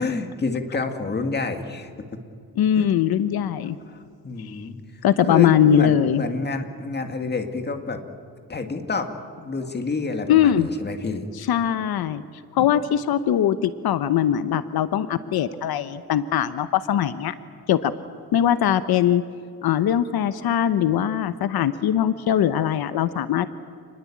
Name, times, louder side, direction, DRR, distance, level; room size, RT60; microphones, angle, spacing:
voice 1, 0.0-1.9 2.8-2.9 3.9-4.8 5.2-8.0 8.5-9.1 9.4-11.3 12.6-12.7, left 3 dB, 25° left, 6 dB, 2.1 m, -28 dB
voice 2, 2.6-3.8 4.4-4.6 5.0-6.2 10.3-10.7 11.3-12.2 12.5-17.3 17.7-17.9 18.3-19.2 19.6-23.5, left 10 dB, 80° left, 12 dB, 1.0 m, -21 dB
28.5 x 20.5 x 8.6 m, 2.4 s
wide cardioid pair, 150°, 37 cm